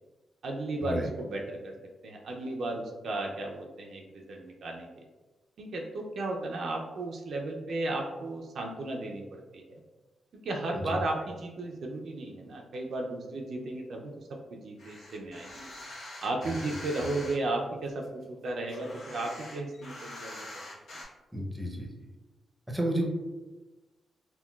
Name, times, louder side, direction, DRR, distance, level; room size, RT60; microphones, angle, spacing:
voice 1, 0.4-1.7 2.0-4.9 5.6-9.8 10.4-15.7 16.2-20.5, right 2 dB, 70° right, 1 dB, 0.4 m, -34 dB
sound 1, 14.8-17.3 17.8-21.0, left 1 dB, 80° left, 1.0 m, -44 dB
voice 2, 21.3-21.9 22.7-23.1, right 1 dB, 5° right, -1 dB, 0.7 m, -31 dB
3.7 x 2.2 x 2.2 m, 1.2 s
cardioid pair, 75°, 0 cm